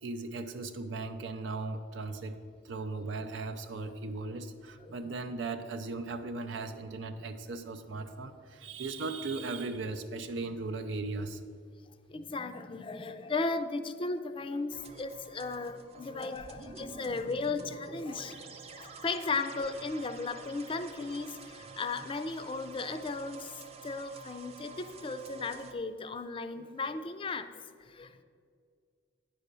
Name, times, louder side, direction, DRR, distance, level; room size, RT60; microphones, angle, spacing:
voice 1, 0.0-2.4 2.6-11.4, right 3 dB, 90° right, 5 dB, 0.5 m, -37 dB
voice 2, 4.8-5.1 12.1-18.3 18.8-23.5 23.8-27.5 27.9-28.2, left 3 dB, 30° left, 10 dB, 0.4 m, -36 dB
sound 1, 14.7-25.7, right 4 dB, 35° right, 0.6 m, -49 dB
9.0 x 5.0 x 6.7 m, 2.2 s
head